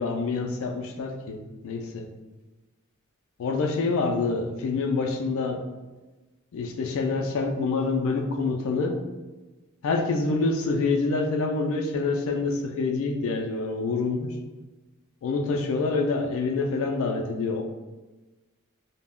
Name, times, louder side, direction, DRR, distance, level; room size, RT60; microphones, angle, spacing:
voice 1, 0.0-1.4 1.6-2.1 3.4-5.6 6.5-9.0 9.8-14.3 15.2-17.6, left 3 dB, 65° left, 3 dB, 0.3 m, -26 dB
2.2 x 2.0 x 3.5 m, 1.2 s
head